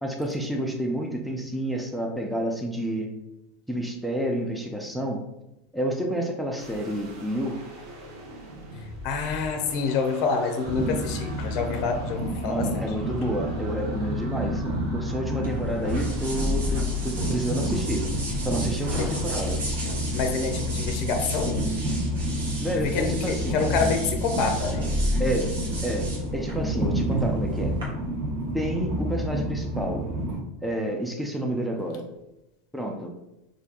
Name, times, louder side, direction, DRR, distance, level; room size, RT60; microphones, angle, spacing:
voice 1, 0.0-3.1 3.7-5.2 5.7-7.6 12.4-14.6 14.9-18.1 18.4-19.6 22.6-23.6 25.2-25.5 25.8-27.8 28.5-30.1 30.6-32.0 32.7-33.1, right 1 dB, ahead, 1 dB, 0.5 m, -29 dB
sound 1, 6.6-18.6, right 1 dB, 65° right, 1.0 m, -45 dB
voice 2, 9.0-12.8 19.0-19.1 20.1-21.6 22.7-24.8, left 5 dB, 50° left, 4 dB, 0.5 m, -27 dB
Train, 10.6-30.4, equal, 40° right, 1.3 m, -30 dB
sound 2, 15.4-27.8, equal, 85° right, 1.1 m, -32 dB
4.5 x 2.5 x 2.4 m, 0.91 s
hypercardioid pair, 100°, 0 cm